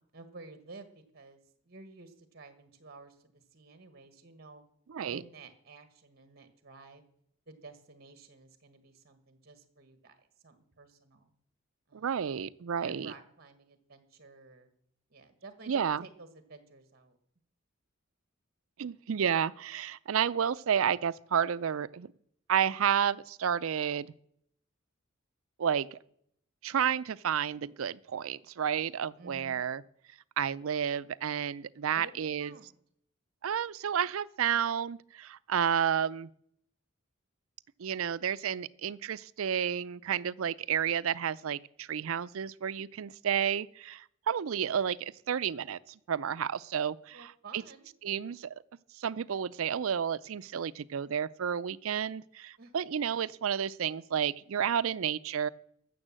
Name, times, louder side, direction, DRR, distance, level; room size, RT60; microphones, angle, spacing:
voice 1, 0.1-3.2 3.5-4.6 5.1-7.0 7.5-11.3 11.9-12.2 12.8-14.7 15.1-17.2 29.2-29.6 31.9-32.8 47.1-47.9 52.6-52.7, right 3 dB, 50° right, 1.4 m, -52 dB
voice 2, 4.9-5.2 11.9-13.1 15.7-16.0 18.8-22.1 22.5-24.1 25.6-26.0 26.6-29.8 30.4-32.5 33.4-36.3 37.8-47.6 48.0-48.5 48.9-55.5, right 8 dB, 80° right, 0.5 m, -31 dB
13.0 x 7.1 x 7.5 m
head